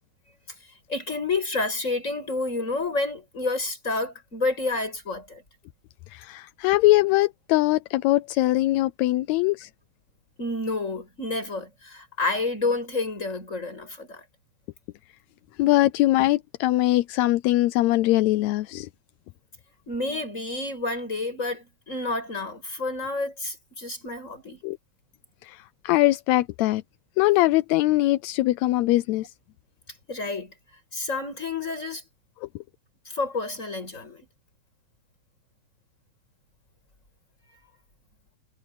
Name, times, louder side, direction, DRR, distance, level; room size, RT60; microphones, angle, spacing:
voice 1, 0.9-5.4 10.4-14.2 19.9-24.6 30.1-30.5 30.9-32.0 33.1-34.3, left 3 dB, 20° left, 7.1 m, -29 dB
voice 2, 6.1-9.7 15.6-18.9 24.6-24.8 25.4-26.8 27.2-29.3, left 17 dB, 80° left, 1.7 m, -22 dB
omnidirectional pair, 3.6 m